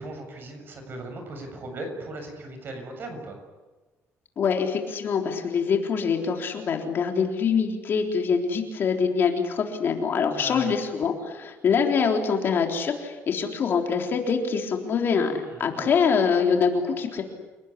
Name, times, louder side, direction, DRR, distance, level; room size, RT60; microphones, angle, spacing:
voice 1, 0.0-3.4 10.4-10.8 15.4-15.9, right 2 dB, 45° right, 5 dB, 7.3 m, -38 dB
voice 2, 4.4-17.2, left 6 dB, 45° left, 3 dB, 3.7 m, -24 dB
29.5 x 19.0 x 10.0 m, 1.2 s
cardioid pair, 145°, 5 cm